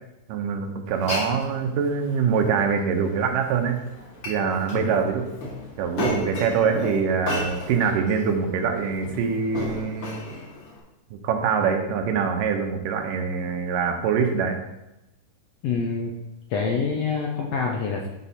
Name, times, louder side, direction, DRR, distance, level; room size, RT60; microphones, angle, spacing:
voice 1, 0.3-3.8 4.3-5.3 5.8-10.2 11.1-14.6, right 6 dB, 80° right, 4 dB, 2.5 m, -24 dB
Glass, 0.9-10.8, left 2 dB, 45° left, 1.9 m, -35 dB
voice 2, 15.6-16.1 16.5-18.1, left 5 dB, 70° left, -1 dB, 1.6 m, -26 dB
10.0 x 4.6 x 4.2 m, 0.93 s
omnidirectional pair, 3.8 m